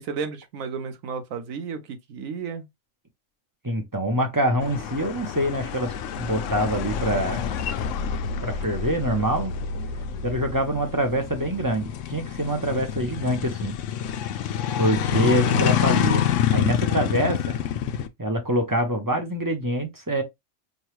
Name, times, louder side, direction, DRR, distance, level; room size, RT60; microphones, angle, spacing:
voice 1, 0.0-2.6, right 5 dB, 80° right, 1.2 m, -33 dB
voice 2, 3.6-7.5 8.4-9.5 10.2-13.8 14.8-17.6 18.2-20.2, right 1 dB, 20° right, 0.6 m, -25 dB
sound 1, 4.6-18.1, left 8 dB, 70° left, 0.9 m, -27 dB
5.4 x 2.2 x 3.0 m
omnidirectional pair, 1.4 m